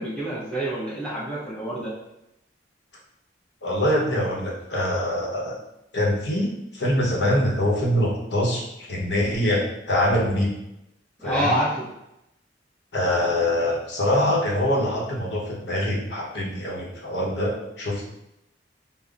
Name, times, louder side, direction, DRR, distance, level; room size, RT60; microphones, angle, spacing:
voice 1, 0.0-1.9 11.2-11.9, equal, 5° left, -8 dB, 0.8 m, -27 dB
voice 2, 3.6-5.6 5.9-10.5 11.2-11.5 12.9-18.0, left 1 dB, 70° left, -2 dB, 0.9 m, -24 dB
5.4 x 2.1 x 2.4 m, 0.86 s
head